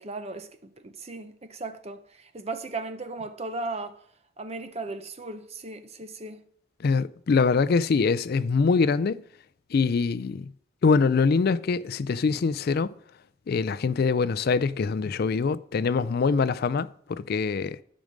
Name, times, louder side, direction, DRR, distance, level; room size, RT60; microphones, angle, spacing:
voice 1, 0.0-4.0 4.4-6.4, right 3 dB, 30° right, 0.8 m, -36 dB
voice 2, 6.8-9.2 9.7-10.5 10.8-12.9 13.5-17.8, left 4 dB, 45° left, 0.3 m, -24 dB
12.5 x 5.1 x 6.4 m
head